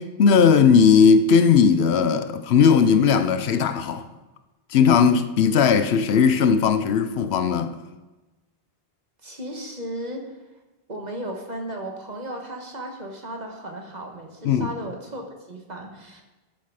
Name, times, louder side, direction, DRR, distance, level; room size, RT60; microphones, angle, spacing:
voice 1, 0.0-4.1 4.7-7.8 14.4-14.7, left 6 dB, 80° left, 0.9 m, -17 dB
voice 2, 9.2-10.4 10.9-16.2, right 1 dB, 40° right, 1.6 m, -35 dB
11.5 x 6.3 x 4.9 m
omnidirectional pair, 1.1 m